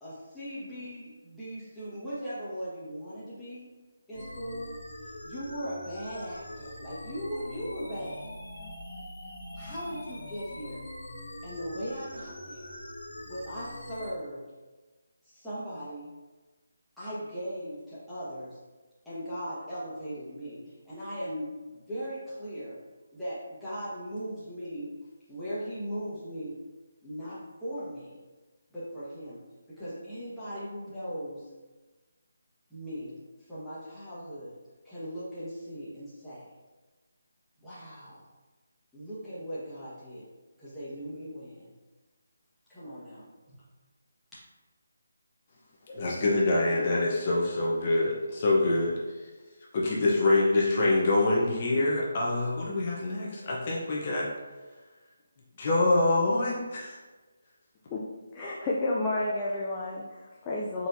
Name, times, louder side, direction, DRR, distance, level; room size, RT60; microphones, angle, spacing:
voice 1, 0.0-3.7 4.1-4.7 5.2-8.3 9.5-10.8 11.4-12.7 13.2-14.4 15.2-16.1 17.0-18.6 19.0-22.8 23.1-24.9 25.3-26.6 27.0-28.2 28.7-29.4 29.7-31.5 32.7-33.2 33.5-34.6 34.8-36.4 37.6-38.2 38.9-40.3 40.6-41.6 42.7-43.6, equal, ahead, -14 dB, 1.3 m, -38 dB
sound 1, 4.1-14.1, left 1 dB, 75° left, 1.3 m, -43 dB
voice 2, 45.9-48.9 49.7-54.3 55.6-57.0, left 2 dB, 35° left, -4 dB, 0.8 m, -25 dB
voice 3, 58.3-60.9, left 2 dB, 20° left, -5 dB, 0.4 m, -31 dB
4.4 x 4.2 x 2.6 m, 1.2 s
figure-of-eight pair, 165°, 0 cm